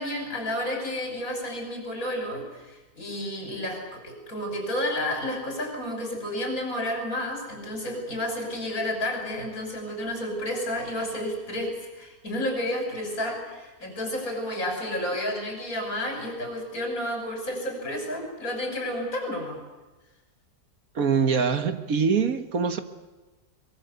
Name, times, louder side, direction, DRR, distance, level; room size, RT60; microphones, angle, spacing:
voice 1, 0.0-19.6, left 1 dB, 60° left, 2 dB, 6.5 m, -31 dB
voice 2, 21.0-22.8, right 6 dB, 60° right, 9 dB, 1.8 m, -24 dB
23.5 x 22.5 x 8.2 m, 1.1 s
omnidirectional pair, 1.7 m